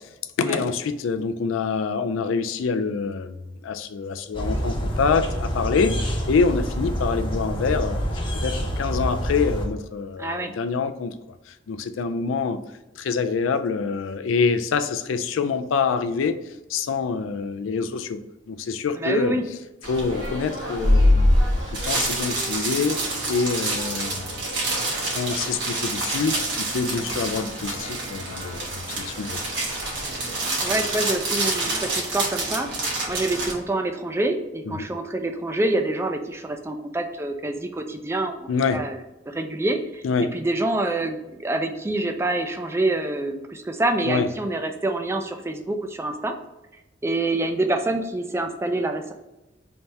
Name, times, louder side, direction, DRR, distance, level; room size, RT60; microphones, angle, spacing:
voice 1, 0.4-8.0 8.3-11.1 11.5-12.6 13.0-16.4 16.7-18.2 18.5-19.3 19.9-21.4 21.7-29.7 34.7-34.9 38.5-38.9 40.0-40.3 44.0-44.3, left 5 dB, 90° left, 9 dB, 0.4 m, -26 dB
sound 1, 4.3-9.7, equal, 25° left, 0.7 m, -27 dB
voice 2, 10.2-10.5 19.0-19.4 30.6-32.7 33.1-39.0 39.3-46.3 47.0-49.1, right 2 dB, 15° right, 6 dB, 0.3 m, -26 dB
raschelndes Plastik, 19.8-33.5, equal, 65° right, 1.3 m, -25 dB
3.4 x 2.7 x 4.4 m, 0.99 s
head